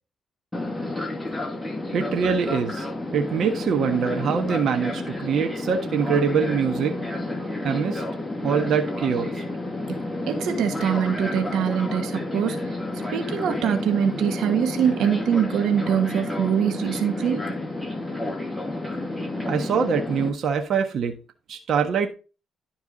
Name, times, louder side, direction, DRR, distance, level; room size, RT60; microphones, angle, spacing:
Fixed-wing aircraft airplane, 0.5-20.3, left 2 dB, 10° left, 2.3 m, -30 dB
voice 1, 1.9-2.9 3.1-6.9 7.4-8.0 8.4-9.4 19.4-21.2 21.5-22.1, right 6 dB, 60° right, 1.4 m, -24 dB
voice 2, 10.3-12.6 13.1-17.4, right 8 dB, 80° right, 1.5 m, -23 dB
11.5 x 4.7 x 4.0 m
cardioid pair, 90°, 0 cm